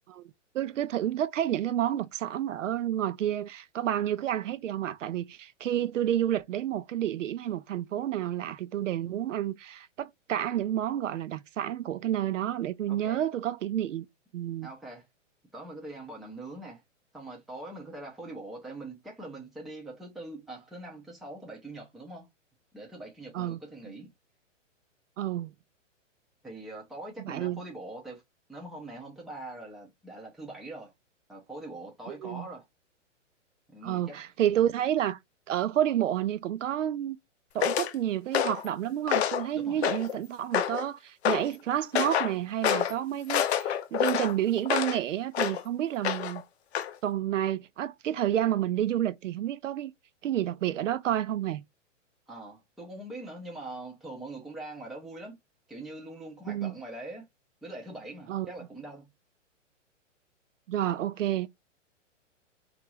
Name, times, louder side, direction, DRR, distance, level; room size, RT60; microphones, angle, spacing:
voice 1, 0.1-14.1 14.3-14.7 23.3-23.6 25.2-25.5 27.2-27.6 32.1-32.4 33.8-35.2 35.5-37.2 37.5-46.4 47.0-49.9 50.2-51.6 56.5-56.7 58.3-58.5 60.7-61.5, right 11 dB, 75° right, 0.5 m, -30 dB
voice 2, 12.9-13.2 14.6-15.1 15.5-16.8 17.1-22.3 22.7-24.1 26.4-28.2 28.5-30.9 31.3-32.6 33.7-34.2 39.5-39.8 52.3-55.4 55.7-57.3 57.6-59.1, right 2 dB, ahead, 0.4 m, -43 dB
sound 1, 37.6-37.9 38.3-38.7 39.1-39.5 39.8-40.2 40.5-40.9 41.3-41.5 42.0-42.3 42.6-42.9 43.3-45.0 45.3-45.6 46.0-46.4 46.8-46.9, left 10 dB, 55° left, 0.6 m, -27 dB
3.0 x 2.4 x 2.8 m
hypercardioid pair, 130°, 38 cm